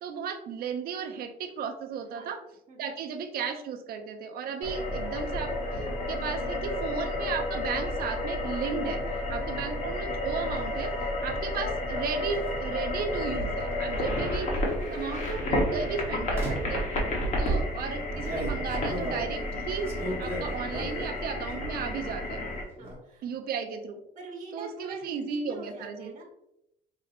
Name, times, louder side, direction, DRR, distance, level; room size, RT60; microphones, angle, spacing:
voice 1, 0.0-2.4 2.8-9.0 9.3-10.9 11.2-14.5 14.9-16.9 17.4-19.9 20.2-22.4 23.2-24.0 24.5-26.1, right 6 dB, 65° right, 7 dB, 0.5 m, -34 dB
sound 1, 4.6-22.6, left 1 dB, 45° left, 1.1 m, -31 dB
voice 2, 9.3-9.6 11.2-11.5 13.9-14.5 22.8-23.5 24.1-26.2, right 2 dB, 45° right, -1 dB, 1.2 m, -45 dB
sound 2, 10.0-10.6 12.3-12.6 13.3-14.2 14.9-15.2 16.3-16.8 17.4-21.2 21.5-22.1 22.4-23.0, right 2 dB, 15° right, 1.4 m, -35 dB
4.8 x 2.8 x 2.5 m, 0.82 s
cardioid pair, 110°, 17 cm